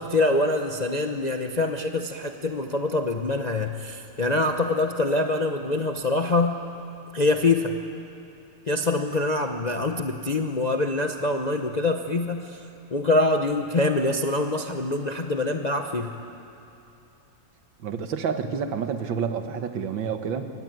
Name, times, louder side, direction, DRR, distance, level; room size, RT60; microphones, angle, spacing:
voice 1, 0.0-6.6 7.1-7.8 8.7-12.6 12.9-16.1, left 2 dB, 40° left, 4 dB, 0.6 m, -25 dB
voice 2, 17.8-20.5, right 6 dB, 75° right, 8 dB, 2.0 m, -29 dB
23.5 x 18.0 x 9.3 m, 2.9 s
omnidirectional pair, 2.1 m